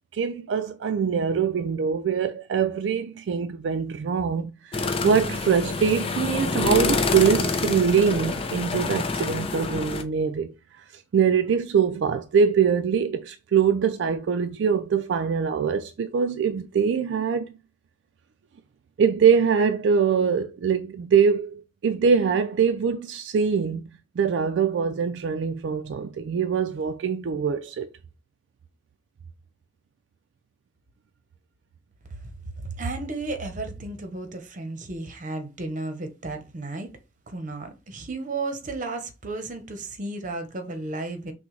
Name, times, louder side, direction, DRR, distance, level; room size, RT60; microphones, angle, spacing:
voice 1, 0.1-10.5 10.9-17.5 19.0-23.9 24.2-27.9, right 6 dB, 75° right, 0.3 m, -23 dB
sound 1, 4.7-10.0, left 3 dB, 30° left, 0.5 m, -27 dB
voice 2, 32.6-36.9 37.3-41.3, right 2 dB, 45° right, 0.8 m, -33 dB
5.9 x 2.2 x 3.1 m
head